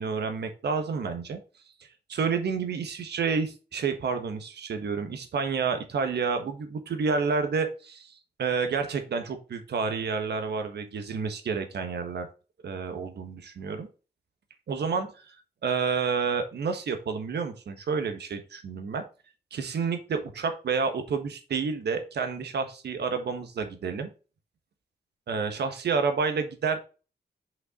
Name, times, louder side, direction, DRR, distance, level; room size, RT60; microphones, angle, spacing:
voice 1, 0.0-1.4 2.1-12.3 12.6-13.9 14.7-15.3 15.6-19.0 19.5-24.1 25.3-26.8, right 5 dB, 75° right, 7 dB, 1.4 m, -29 dB
5.8 x 5.6 x 3.7 m, 0.33 s
wide cardioid pair, 165°, 17 cm